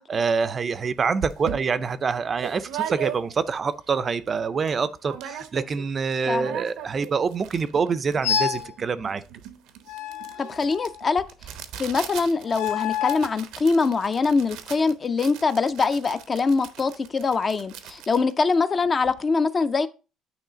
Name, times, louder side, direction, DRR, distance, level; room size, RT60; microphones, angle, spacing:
voice 1, 0.0-9.2, right 5 dB, 30° right, 0.4 m, -26 dB
sound 1, 0.7-0.8 1.2-3.6 4.0-4.1 4.3-4.7 5.0-5.9 6.1-19.2, right 10 dB, 90° right, 0.8 m, -38 dB
voice 2, 6.3-6.6 10.4-11.2 11.8-19.9, left 4 dB, 30° left, 0.4 m, -23 dB
sound 2, 8.2-8.7 9.9-11.1 12.5-13.3, left 8 dB, 85° left, 0.5 m, -28 dB
9.2 x 3.1 x 5.0 m
cardioid pair, 135°, 0 cm